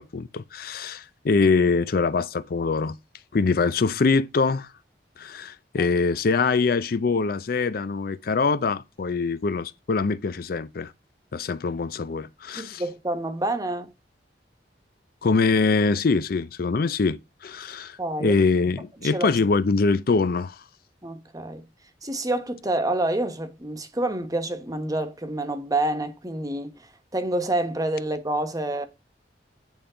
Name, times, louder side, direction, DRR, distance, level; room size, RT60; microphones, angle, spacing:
voice 1, 0.0-3.0 3.3-4.7 5.2-10.9 11.3-12.8 15.2-20.6, left 4 dB, 55° left, 0.5 m, -23 dB
voice 2, 12.6-13.9 18.0-18.3 19.1-19.3 21.0-21.6 22.0-26.7 27.1-28.9, right 1 dB, 20° right, 1.1 m, -28 dB
9.2 x 3.7 x 5.0 m
head